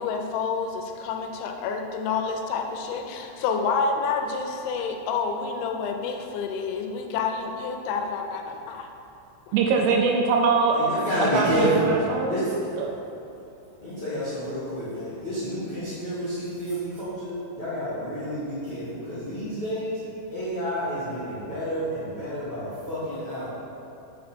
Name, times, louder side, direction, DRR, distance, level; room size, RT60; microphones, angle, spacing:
voice 1, 0.0-8.9 9.5-9.6, left 5 dB, 90° left, 4 dB, 2.9 m, -29 dB
voice 2, 9.5-10.8 11.2-13.0, right 4 dB, 80° right, 1 dB, 2.5 m, -23 dB
voice 3, 10.7-11.9 12.3-12.4 13.8-20.0 20.3-23.5, equal, 70° left, -13 dB, 0.9 m, -29 dB
8.5 x 4.5 x 4.3 m, 2.8 s
omnidirectional pair, 5.2 m